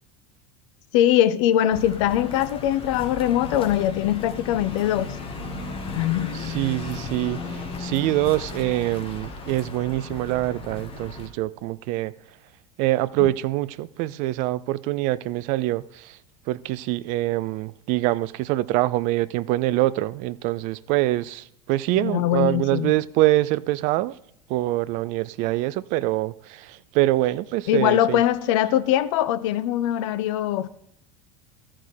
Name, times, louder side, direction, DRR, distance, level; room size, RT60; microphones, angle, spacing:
voice 1, 0.9-5.2 6.0-6.3 22.0-22.9 27.7-30.7, left 12 dB, 50° left, 0.6 m, -22 dB
sound 1, 1.7-11.3, left 3 dB, 25° left, 1.6 m, -35 dB
voice 2, 6.3-12.1 12.8-16.2 16.5-24.2 24.5-28.2, right 17 dB, 40° right, 0.4 m, -25 dB
13.5 x 5.0 x 4.4 m
figure-of-eight pair, 75°, 20 cm